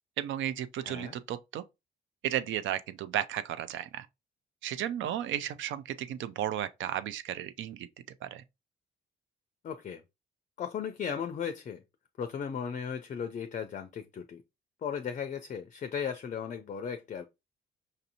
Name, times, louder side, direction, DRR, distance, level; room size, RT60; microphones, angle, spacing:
voice 1, 0.2-1.6 2.2-4.1 4.6-7.9 8.2-8.4, right 11 dB, 75° right, 0.4 m, -34 dB
voice 2, 0.8-1.2 9.6-10.0 10.6-11.8 12.2-14.4 14.8-17.2, left 7 dB, 40° left, 0.4 m, -36 dB
5.1 x 2.6 x 2.7 m
cardioid pair, 90°, 20 cm